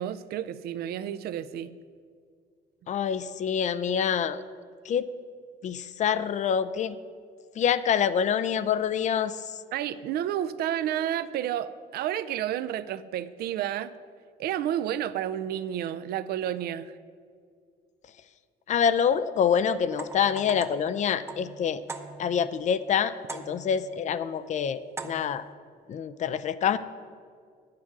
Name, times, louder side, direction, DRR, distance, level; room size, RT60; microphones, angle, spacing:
voice 1, 0.0-1.7 9.7-13.9 14.4-17.0, right 11 dB, 70° right, 14 dB, 0.5 m, -31 dB
voice 2, 2.9-4.4 4.8-5.1 5.6-7.0 7.6-9.6 18.7-21.8 22.2-25.4 25.9-26.8, left 8 dB, 45° left, 14 dB, 0.5 m, -26 dB
Metal Pipe Contact Mic, 19.9-22.5 23.3-23.9 25.0-25.5, right 3 dB, 15° right, 0.7 m, -41 dB
9.8 x 7.7 x 6.0 m, 2.1 s
cardioid pair, 110°, 17 cm